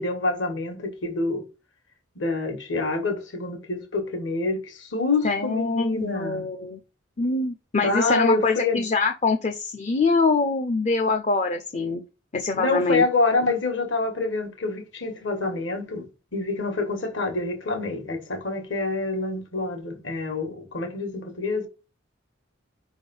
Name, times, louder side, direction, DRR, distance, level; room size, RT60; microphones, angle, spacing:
voice 1, 0.0-1.4 2.1-6.4 7.8-8.8 12.5-21.7, left 3 dB, 65° left, 1.6 m, -27 dB
voice 2, 5.2-6.8 7.2-12.0 12.3-13.0, left 3 dB, 35° left, 0.5 m, -24 dB
5.4 x 3.6 x 5.3 m
head